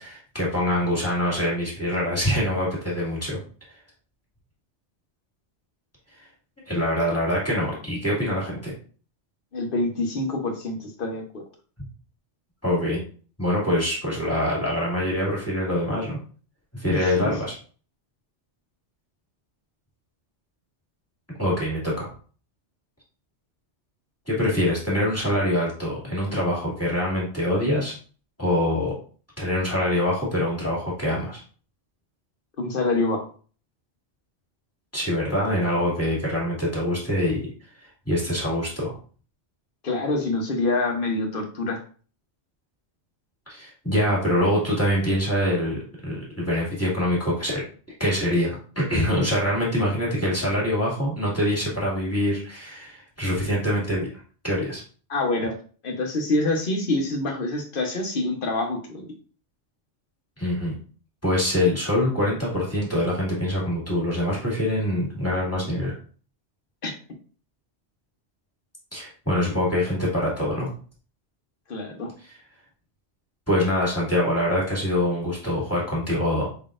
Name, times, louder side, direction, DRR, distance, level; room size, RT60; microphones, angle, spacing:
voice 1, 0.0-3.4 6.7-8.7 12.6-13.0 13.4-16.2 16.7-17.5 21.4-22.1 24.3-27.9 28.4-28.9 29.4-31.4 34.9-37.4 38.1-38.9 43.5-47.6 48.0-54.1 54.4-54.8 60.4-60.7 61.2-65.9 68.9-70.7 73.5-76.5, left 1 dB, 10° left, -5 dB, 2.0 m, -24 dB
voice 2, 9.5-11.4 16.9-17.3 32.6-33.3 39.8-41.8 55.1-55.6 55.8-59.1 66.8-66.9 71.7-72.1, left 2 dB, 50° left, 2 dB, 1.1 m, -26 dB
5.1 x 3.9 x 2.5 m, 0.40 s
omnidirectional pair, 1.2 m